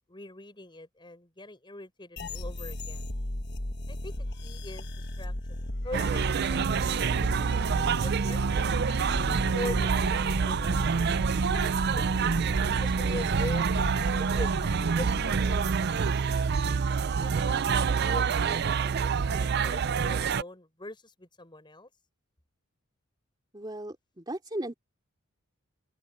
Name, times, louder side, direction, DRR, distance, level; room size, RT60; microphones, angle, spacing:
voice 1, 0.1-3.1 3.9-8.4 9.0-10.9 11.5-12.3 12.8-16.5 17.2-21.9, left 1 dB, 20° left, 5.5 m, -43 dB
sound 1, 2.2-15.7, left 1 dB, 50° left, 1.5 m, -35 dB
sound 2, 5.9-20.4, right 6 dB, 50° right, 0.4 m, -27 dB
voice 2, 23.5-24.7, right 1 dB, 20° right, 2.9 m, -36 dB
open air
head